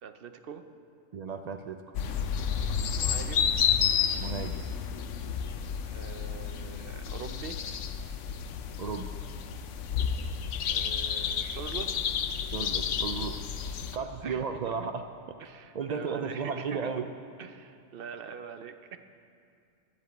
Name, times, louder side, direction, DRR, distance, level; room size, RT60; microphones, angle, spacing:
voice 1, 0.0-0.6 2.9-3.5 5.8-7.6 10.7-12.0 14.2-14.4 14.8-14.9 15.4-16.9 17.4-19.0, right 7 dB, 55° right, 8 dB, 0.7 m, -43 dB
voice 2, 1.1-1.9 4.2-4.6 8.8-9.2 12.5-13.4 13.9-15.0 15.7-17.1, right 5 dB, 90° right, 7 dB, 0.3 m, -34 dB
sound 1, 1.9-14.0, left 7 dB, 75° left, 1.0 m, -31 dB
10.5 x 8.2 x 9.1 m, 2.4 s
omnidirectional pair, 1.3 m